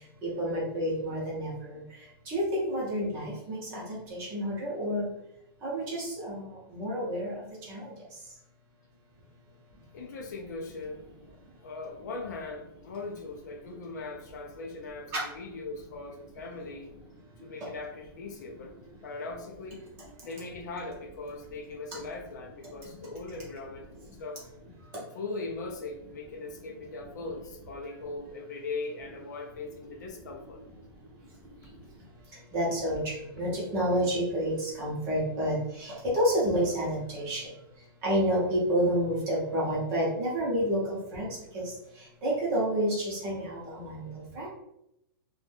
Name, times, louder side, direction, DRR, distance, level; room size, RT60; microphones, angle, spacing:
voice 1, 0.2-1.8 2.3-5.1 5.6-7.9 15.1-15.2 32.5-37.5 38.0-41.3 41.5-41.7 42.2-44.1 44.4-44.5, equal, 20° right, -5 dB, 0.7 m, -29 dB
voice 2, 9.9-11.4 11.6-16.9 17.4-18.7 19.0-19.8 20.2-24.4 25.1-30.6, left 3 dB, 45° left, 2 dB, 0.4 m, -40 dB
2.5 x 2.2 x 3.3 m, 0.84 s
supercardioid pair, 180°, 13 cm